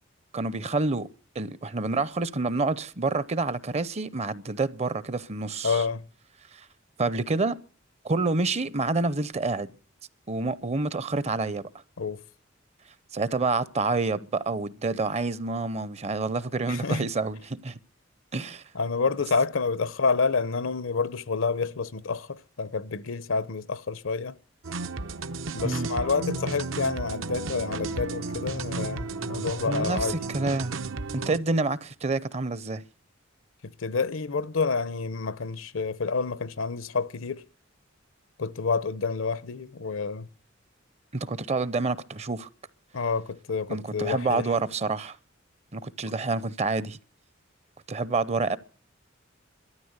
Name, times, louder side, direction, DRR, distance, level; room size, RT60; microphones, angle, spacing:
voice 1, 0.3-1.1 1.3-5.8 6.5-6.7 7.0-7.6 8.0-9.7 10.3-11.7 13.1-17.8 18.3-18.6 25.6-25.9 29.6-30.7 31.1-32.8 41.1-42.5 43.7-45.2 45.7-47.0 47.9-48.6, right 3 dB, 35° right, 0.6 m, -28 dB
voice 2, 5.6-6.1 12.0-12.2 16.7-17.0 18.7-24.4 25.5-30.2 33.6-37.4 38.4-40.3 42.9-44.5, left 4 dB, 80° left, 0.8 m, -28 dB
sound 1, 24.6-31.4, right 3 dB, 75° right, 0.8 m, -33 dB
13.0 x 11.0 x 8.0 m
head